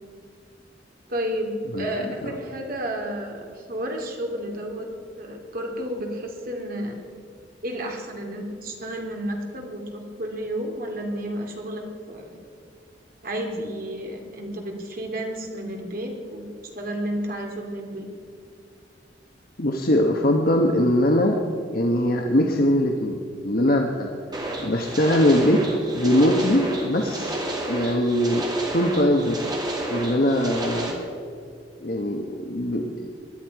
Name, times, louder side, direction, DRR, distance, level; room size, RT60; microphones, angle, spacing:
voice 1, 1.1-4.9 5.2-7.0 7.6-12.4 13.2-16.5 16.7-18.1, right 1 dB, 55° right, 1 dB, 2.5 m, -31 dB
voice 2, 19.6-21.4 21.7-24.1 24.6-27.4 27.7-29.4 29.9-31.0 31.8-33.1, left 1 dB, 55° left, 2 dB, 1.1 m, -22 dB
sound 1, 24.3-30.9, right 1 dB, 25° right, 2.4 m, -30 dB
20.0 x 12.0 x 4.7 m, 2.3 s
head